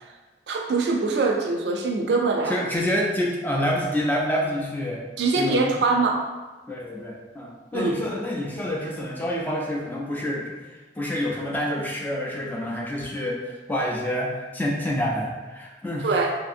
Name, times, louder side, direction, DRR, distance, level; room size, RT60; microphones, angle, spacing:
voice 1, 0.5-2.6 5.2-6.3 7.7-7.9 16.0-16.3, right 3 dB, 65° right, 2 dB, 0.4 m, -23 dB
voice 2, 2.5-5.0 5.4-5.7 6.7-16.2, left 1 dB, 10° left, -2 dB, 0.3 m, -27 dB
2.6 x 2.6 x 2.5 m, 1.2 s
head